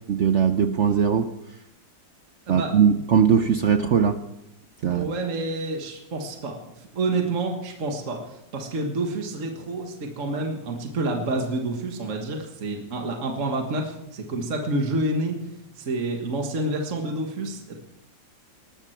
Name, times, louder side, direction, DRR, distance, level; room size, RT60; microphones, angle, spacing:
voice 1, 0.1-1.3 2.5-4.2 4.8-5.1, right 7 dB, 75° right, 9 dB, 0.6 m, -20 dB
voice 2, 2.5-3.0 4.9-6.6 7.0-8.2 8.5-15.4 15.8-17.7, right 2 dB, 45° right, 2 dB, 1.7 m, -28 dB
19.5 x 13.0 x 4.5 m, 0.86 s
omnidirectional pair, 2.1 m